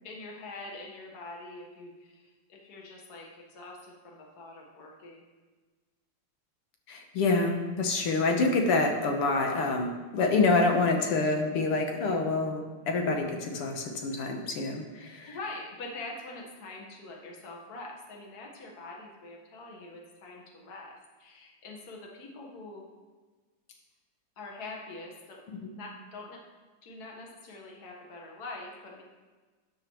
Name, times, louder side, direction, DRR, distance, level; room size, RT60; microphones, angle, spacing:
voice 1, 0.0-5.2 15.3-22.8 24.4-25.4 25.7-26.4 26.8-29.0, left 2 dB, 50° left, 0 dB, 1.8 m, -44 dB
voice 2, 6.9-15.4 25.5-25.7, left 3 dB, 85° left, 3 dB, 2.1 m, -27 dB
12.5 x 8.6 x 3.1 m, 1.3 s
omnidirectional pair, 2.4 m